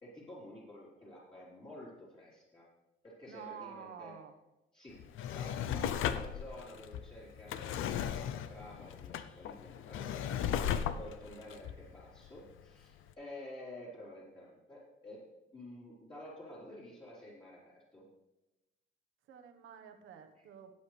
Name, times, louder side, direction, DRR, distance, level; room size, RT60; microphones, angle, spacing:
voice 1, 0.0-2.7 3.0-4.1 4.7-5.0 5.3-10.0 10.9-15.2 15.5-18.0 20.4-20.5, left 1 dB, 25° left, -9 dB, 4.2 m, -50 dB
voice 2, 3.3-4.3 19.3-20.7, right 8 dB, 85° right, 7 dB, 1.3 m, -49 dB
Drawer open or close, 4.9-12.6 13.1-13.2, left 9 dB, 85° left, 0.7 m, -37 dB
16.5 x 8.2 x 3.4 m, 0.98 s
cardioid pair, 90°, 20 cm